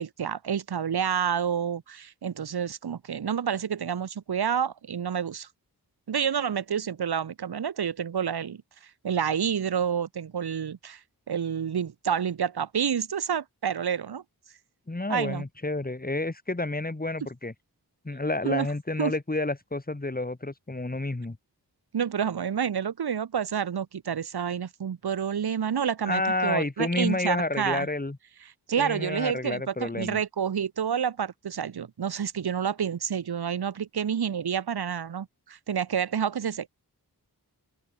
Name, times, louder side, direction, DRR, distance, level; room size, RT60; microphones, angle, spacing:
voice 1, 0.0-5.5 6.1-8.6 9.0-11.0 11.3-14.2 15.1-15.4 18.4-18.7 19.0-19.1 21.9-27.9 28.7-36.7, right 8 dB, 70° right, 1.0 m, -29 dB
voice 2, 14.9-17.5 18.0-21.4 26.1-28.2 28.8-30.2, left 2 dB, 20° left, 2.9 m, -30 dB
open air
wide cardioid pair, 100°, 39 cm